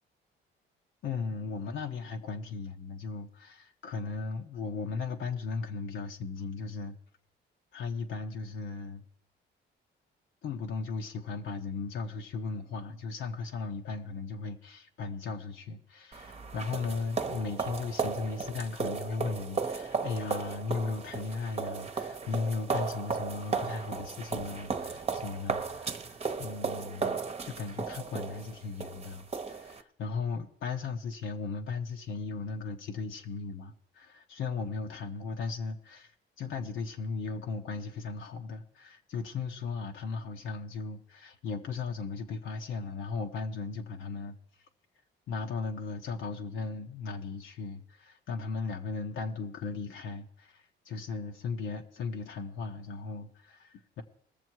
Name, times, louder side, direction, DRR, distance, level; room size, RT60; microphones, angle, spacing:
voice 1, 1.0-7.0 7.7-9.0 10.4-27.2 27.4-36.1 36.4-44.4 45.3-54.0, left 4 dB, 75° left, 1.0 m, -37 dB
sound 1, 16.1-29.8, right 5 dB, 30° right, 0.9 m, -35 dB
20.0 x 7.0 x 4.6 m
cardioid pair, 90°, 20 cm